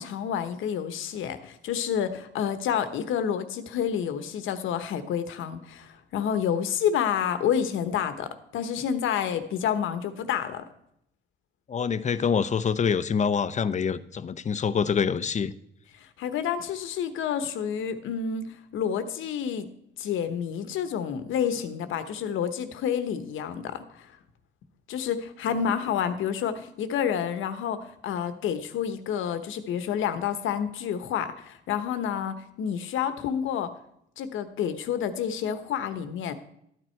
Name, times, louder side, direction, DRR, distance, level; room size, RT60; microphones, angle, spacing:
voice 1, 0.0-10.6 16.2-18.5 18.7-19.7 20.0-24.0 24.9-33.7 34.2-36.3, left 8 dB, 80° left, 10 dB, 1.1 m, -29 dB
voice 2, 11.7-15.5, left 6 dB, 35° left, 15 dB, 0.6 m, -26 dB
12.5 x 9.3 x 4.5 m, 0.75 s
cardioid pair, 90°, 20 cm